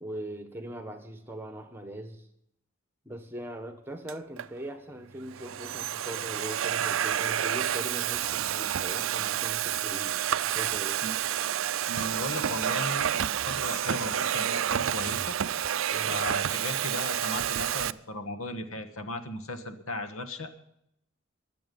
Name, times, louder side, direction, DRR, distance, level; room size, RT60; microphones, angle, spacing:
voice 1, 0.0-2.3 3.0-11.0 15.9-16.2, right 1 dB, 10° right, 7 dB, 1.4 m, -41 dB
Domestic sounds home sounds, 4.1-4.5 5.2-17.9, right 10 dB, 70° right, 0.4 m, -29 dB
voice 2, 11.9-15.4 16.0-20.5, left 1 dB, 85° left, 8 dB, 1.5 m, -36 dB
22.5 x 7.6 x 5.4 m, 0.76 s
head